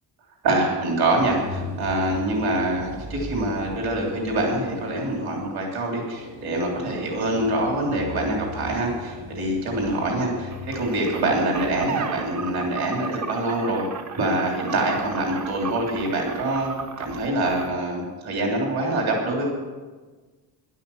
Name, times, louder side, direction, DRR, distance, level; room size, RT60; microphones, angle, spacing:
voice 1, 0.4-13.9 14.1-16.7 17.0-19.5, right 1 dB, 60° right, 0 dB, 3.3 m, -25 dB
sound 1, 0.9-12.9, left 1 dB, 85° right, 2.4 m, -38 dB
sound 2, 10.5-17.8, right 6 dB, 40° right, 0.8 m, -36 dB
12.0 x 11.5 x 7.1 m, 1.3 s
cardioid pair, 160°, 42 cm